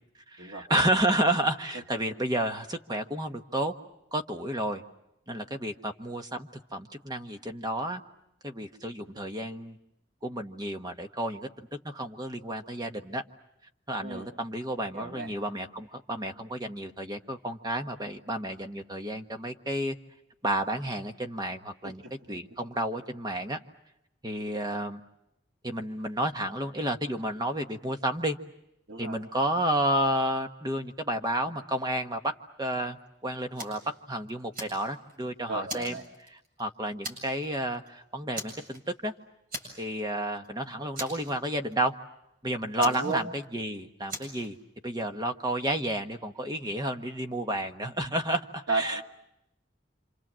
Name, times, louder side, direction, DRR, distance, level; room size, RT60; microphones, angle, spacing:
voice 1, 0.3-3.7 4.1-4.8 5.3-8.0 8.4-9.8 10.2-13.2 13.9-20.0 20.4-22.0 22.3-23.6 24.2-25.0 25.6-28.4 29.0-32.3 32.6-33.8 34.1-36.0 36.3-39.1 39.8-41.9 42.4-44.6 44.8-49.0, right 1 dB, 20° right, 5 dB, 1.4 m, -31 dB
voice 2, 14.9-15.3 21.8-21.9 28.9-29.2 35.5-36.0 42.8-43.3 48.7-49.0, right 3 dB, 85° right, 1 dB, 2.1 m, -32 dB
Fire, 33.6-33.9 34.3-35.2 35.7-36.6 37.0-37.4 37.7-37.9 38.3-39.1 39.5-40.1 40.3-40.5 40.9-41.7 42.8-43.6 44.1-44.5, right 1 dB, 50° right, 7.6 m, -39 dB
28.5 x 26.5 x 7.6 m, 0.83 s
head